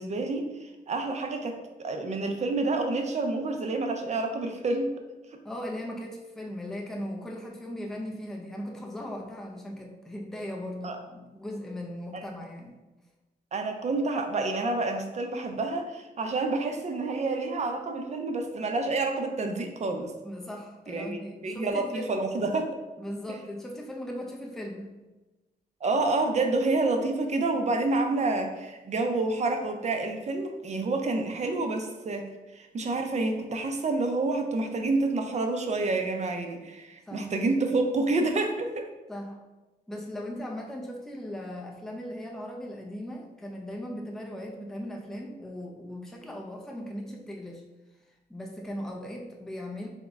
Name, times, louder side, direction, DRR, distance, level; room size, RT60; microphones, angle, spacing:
voice 1, 0.0-4.9 10.8-11.0 12.1-12.2 13.5-20.1 20.9-22.7 25.8-38.9, right 3 dB, 45° right, 5 dB, 0.5 m, -28 dB
voice 2, 5.4-12.8 20.2-22.1 23.0-25.0 37.1-37.3 39.1-39.4 39.9-47.6 48.1-49.9, left 1 dB, 5° left, 0 dB, 0.5 m, -38 dB
3.6 x 3.1 x 3.5 m, 1.1 s
wide cardioid pair, 110°, 16 cm